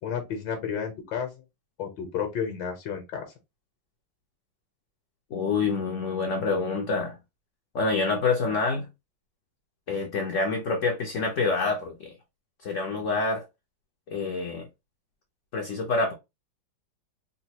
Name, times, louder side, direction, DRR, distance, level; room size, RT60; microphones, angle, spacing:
voice 1, 0.0-1.3 1.8-3.3, left 7 dB, 75° left, 1.6 m, -31 dB
voice 2, 5.3-7.2 7.7-8.9 9.9-12.1 12.6-13.4 14.1-14.7 15.5-16.1, left 4 dB, 60° left, 0.9 m, -27 dB
4.0 x 2.3 x 2.8 m
omnidirectional pair, 2.0 m